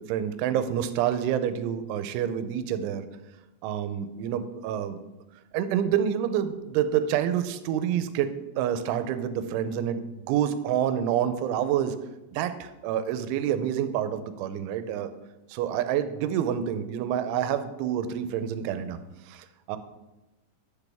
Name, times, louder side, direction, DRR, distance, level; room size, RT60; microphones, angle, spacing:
voice 1, 0.0-3.0 3.6-5.0 5.5-12.0 12.3-15.1 15.5-19.0 19.3-19.8, right 9 dB, 90° right, 11 dB, 3.1 m, -28 dB
10.5 x 8.4 x 3.4 m, 1.0 s
omnidirectional pair, 5.4 m